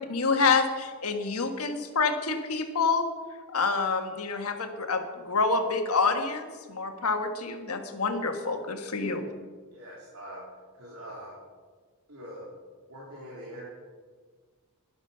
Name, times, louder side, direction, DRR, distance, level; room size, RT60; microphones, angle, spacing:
voice 1, 0.1-3.1 3.5-9.2, left 4 dB, 80° left, 5 dB, 1.5 m, -27 dB
voice 2, 9.7-10.4 10.7-11.4 12.1-12.5 12.9-13.6, equal, 70° right, -5 dB, 3.3 m, -43 dB
12.0 x 11.5 x 5.6 m, 1.5 s
head